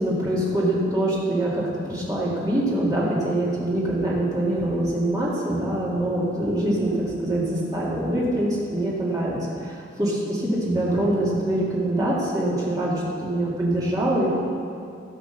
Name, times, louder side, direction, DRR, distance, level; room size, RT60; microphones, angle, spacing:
voice 1, 0.0-14.3, right 1 dB, 20° right, -6 dB, 2.3 m, -24 dB
16.0 x 5.9 x 5.8 m, 2.4 s
head